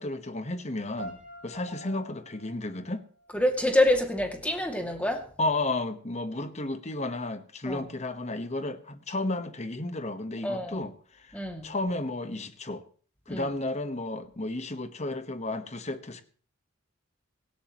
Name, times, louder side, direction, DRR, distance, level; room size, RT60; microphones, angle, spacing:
voice 1, 0.0-3.0 5.4-12.8 13.3-16.2, left 2 dB, 35° left, 1.2 m, -33 dB
sound 1, 1.0-4.0, right 1 dB, 35° right, 4.8 m, -47 dB
voice 2, 3.3-5.2 7.7-7.9 10.4-10.8 11.3-11.7 13.3-13.5, left 1 dB, 5° left, 2.3 m, -26 dB
17.5 x 16.5 x 3.1 m
head